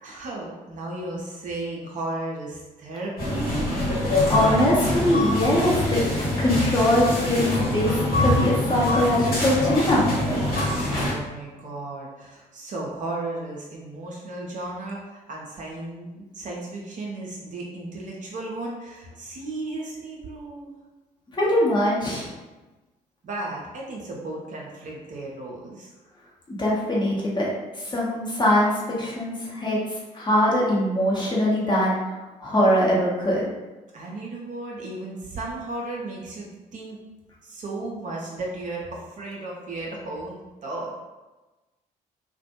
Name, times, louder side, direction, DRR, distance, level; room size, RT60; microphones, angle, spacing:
voice 1, 0.0-3.7 10.9-20.7 23.2-25.9 33.9-37.0 37.4-40.9, right 2 dB, 40° right, -3 dB, 0.6 m, -34 dB
sound 1, 3.2-11.1, left 1 dB, 45° left, 1.1 m, -24 dB
voice 2, 4.3-6.0 6.4-10.1 21.3-22.3 26.5-33.5, left 1 dB, 20° left, -5 dB, 0.9 m, -22 dB
2.4 x 2.1 x 2.7 m, 1.1 s
figure-of-eight pair, 45°, 20 cm